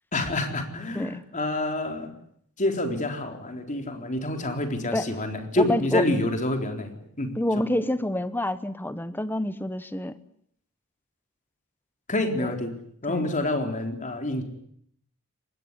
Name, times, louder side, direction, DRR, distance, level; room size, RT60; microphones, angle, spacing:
voice 1, 0.1-2.1 2.6-7.7 12.1-12.7 13.0-14.4, left 1 dB, 35° left, 5 dB, 3.9 m, -28 dB
voice 2, 5.6-6.0 7.4-10.2 12.4-12.5 13.1-13.2, left 1 dB, 10° left, 13 dB, 1.0 m, -27 dB
24.0 x 20.0 x 9.8 m, 0.69 s
head